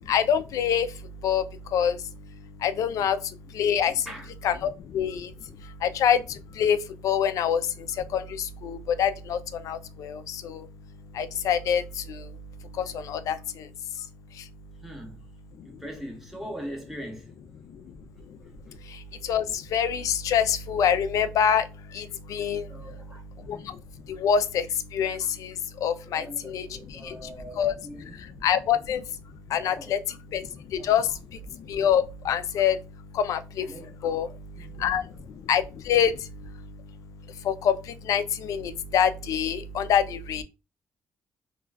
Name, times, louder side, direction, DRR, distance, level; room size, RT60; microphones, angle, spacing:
voice 1, 0.1-0.9 1.2-1.4 1.7-2.0 2.6-3.2 3.5-3.9 4.4-5.3 5.8-6.2 6.6-6.8 7.0-7.6 8.1-9.4 9.7-10.6 11.2-11.8 12.1-12.2 12.8-13.4 19.3-21.6 21.9-22.6 23.5-23.6 24.1-24.6 24.9-25.5 25.8-26.7 27.0-27.1 27.6-27.7 28.4-29.0 29.5-30.0 30.3-30.4 30.8-31.1 31.7-32.8 33.1-33.7 34.0-34.3 34.8-35.0 35.5-36.1 37.5-37.8 38.1-40.4, left 8 dB, 75° left, 0.3 m, -25 dB
voice 2, 14.8-15.2 15.6-17.3 22.7-23.5 26.0-28.3 29.6-30.0 30.7-30.9 33.6-34.2 34.6-34.8, equal, 5° right, 0.9 m, -41 dB
2.2 x 2.2 x 3.3 m
cardioid pair, 110°, 6 cm